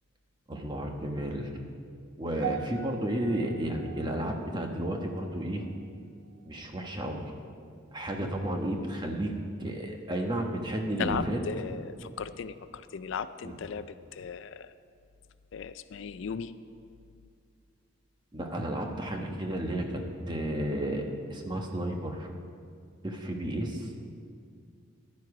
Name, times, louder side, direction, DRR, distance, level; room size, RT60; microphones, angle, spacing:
voice 1, 0.5-1.5 2.2-5.7 6.4-7.2 7.9-9.3 9.6-11.4 13.4-13.5 18.3-22.3 23.0-23.9, right 1 dB, 20° right, 2 dB, 1.1 m, -32 dB
sound 1, 2.4-6.8 7.1-7.5 8.1-8.2, right 7 dB, 55° right, 0.5 m, -43 dB
voice 2, 11.0-14.7 15.5-16.5, left 6 dB, 60° left, 13 dB, 0.4 m, -36 dB
14.5 x 11.0 x 4.8 m, 2.3 s
head